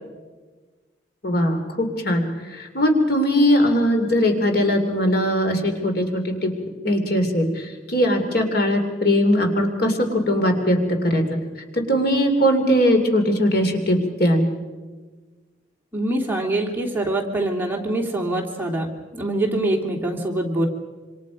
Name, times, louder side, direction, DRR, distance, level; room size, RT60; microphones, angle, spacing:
voice 1, 1.2-2.2 2.5-6.5 6.8-10.0 10.3-10.8 11.0-11.2 11.9-14.5, equal, 55° left, 4 dB, 3.0 m, -20 dB
voice 2, 15.9-18.9 19.1-20.7, right 1 dB, 10° right, 0 dB, 2.9 m, -24 dB
26.5 x 26.0 x 5.2 m, 1.4 s
head